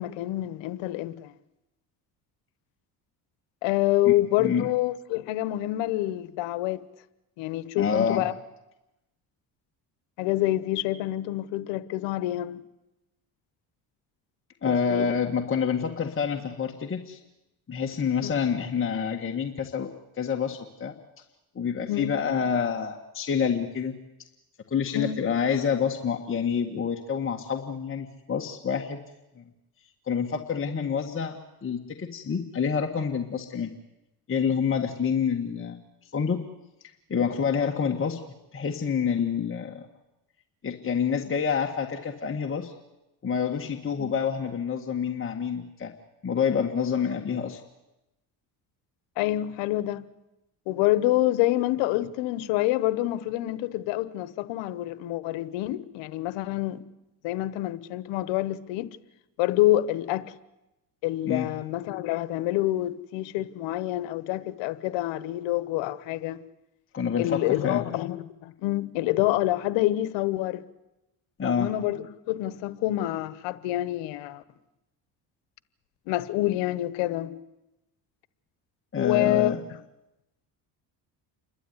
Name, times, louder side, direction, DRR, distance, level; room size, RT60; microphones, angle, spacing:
voice 1, 0.0-1.3 3.6-6.8 7.4-8.3 10.2-12.6 14.7-15.2 18.2-18.3 21.9-22.1 24.9-25.2 44.0-44.1 49.2-50.1 50.7-56.9 57.2-58.9 59.4-60.3 61.0-66.4 67.2-68.2 68.4-70.6 71.4-74.4 76.1-77.4 79.0-79.6, left 15 dB, 85° left, 1.2 m, -27 dB
voice 2, 7.8-8.3 14.6-17.2 17.7-19.9 20.2-20.9 21.6-23.9 24.7-29.0 29.4-29.5 30.1-33.7 34.3-35.8 36.1-36.4 37.1-38.2 38.5-39.9 40.6-42.7 43.2-45.9 46.2-47.6 61.3-61.5 66.9-67.8 71.4-71.7 78.9-79.6, left 6 dB, 30° left, 1.8 m, -27 dB
28.5 x 12.5 x 9.7 m
cardioid pair, 95°, 43 cm